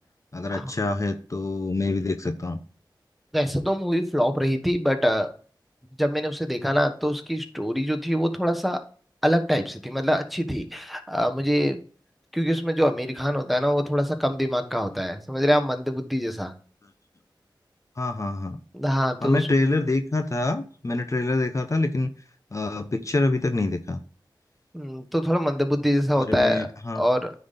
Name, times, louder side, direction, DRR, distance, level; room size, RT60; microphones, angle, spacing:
voice 1, 0.3-2.6 18.0-18.6 19.2-22.1 22.5-24.0 26.1-27.0, left 2 dB, 40° left, 7 dB, 0.8 m, -26 dB
voice 2, 3.3-5.3 6.0-8.8 9.2-11.8 12.3-16.5 18.7-19.5 24.7-26.7 26.9-27.3, equal, ahead, 5 dB, 1.2 m, -24 dB
9.5 x 4.2 x 5.1 m, 0.42 s
cardioid pair, 50°, 8 cm